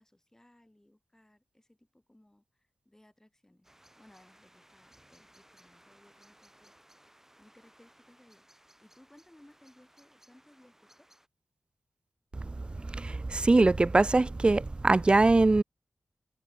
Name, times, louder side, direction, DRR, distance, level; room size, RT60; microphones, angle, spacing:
voice 1, 0.0-3.7 3.9-6.7 7.4-11.1, left 1 dB, 15° left, 7.3 m, -62 dB
sound 1, 3.6-11.3, right 1 dB, 10° right, 5.7 m, -62 dB
voice 2, 12.8-15.6, right 2 dB, 30° right, 0.3 m, -23 dB
cardioid pair, 55°, 3 cm